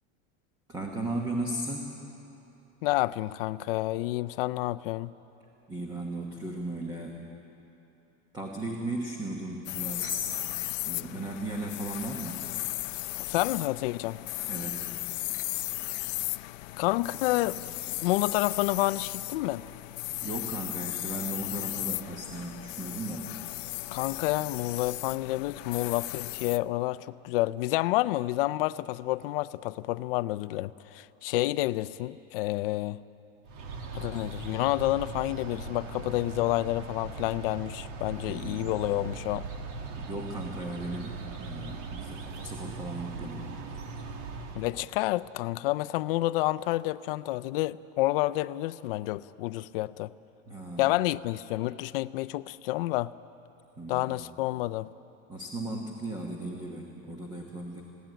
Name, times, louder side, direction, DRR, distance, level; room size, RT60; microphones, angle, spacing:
voice 1, 0.7-2.0 5.7-7.2 8.3-10.4 10.8-12.5 14.5-14.9 20.2-23.3 38.3-38.7 40.0-43.5 50.5-50.9 53.8-54.1 55.3-57.8, right 1 dB, 10° right, 1 dB, 1.1 m, -36 dB
voice 2, 2.8-5.1 13.1-14.2 16.8-19.6 23.9-33.0 33.9-39.5 44.6-50.1 50.8-53.1 53.9-54.9, left 17 dB, 50° left, 16 dB, 0.5 m, -29 dB
sound 1, 9.7-26.6, left 19 dB, 90° left, 0.6 m, -36 dB
sound 2, 33.5-44.8, right 4 dB, 85° right, 2.1 m, -39 dB
21.5 x 16.5 x 9.0 m, 3.0 s
supercardioid pair, 180°, 37 cm